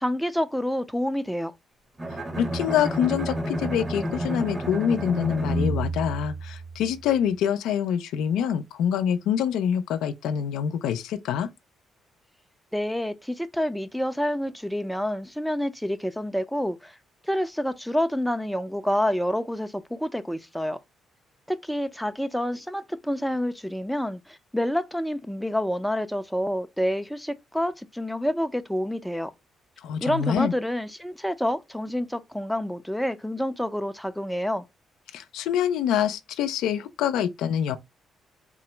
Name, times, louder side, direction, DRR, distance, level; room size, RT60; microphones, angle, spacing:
voice 1, 0.0-1.5 12.7-17.0 17.2-20.8 21.5-29.3 30.0-34.6, equal, ahead, 0.4 m, -28 dB
Bowed string instrument, 2.0-7.0, right 1 dB, 25° right, 0.8 m, -30 dB
voice 2, 2.4-11.5 29.8-30.5 35.1-37.8, left 9 dB, 90° left, 0.4 m, -26 dB
3.7 x 2.0 x 4.3 m
cardioid pair, 90°, 0 cm